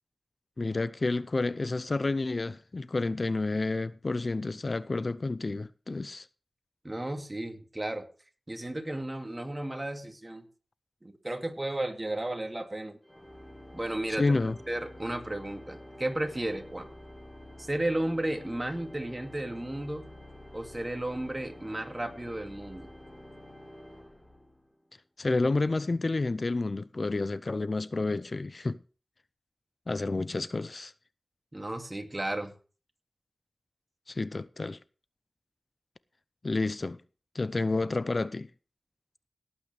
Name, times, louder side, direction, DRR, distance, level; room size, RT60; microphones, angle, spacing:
voice 1, 0.6-6.3 14.2-14.5 25.2-28.8 29.9-30.9 34.1-34.8 36.4-37.0 37.3-38.5, left 3 dB, 55° left, 0.5 m, -30 dB
voice 2, 6.8-8.1 8.5-10.5 11.0-13.0 13.7-14.4 14.7-16.9 17.6-20.1 20.5-22.9 31.5-32.5, right 1 dB, 25° right, 2.3 m, -34 dB
Organ, 13.0-24.9, left 1 dB, 15° left, 4.0 m, -49 dB
18.0 x 8.7 x 3.4 m
wide cardioid pair, 50°, 0 cm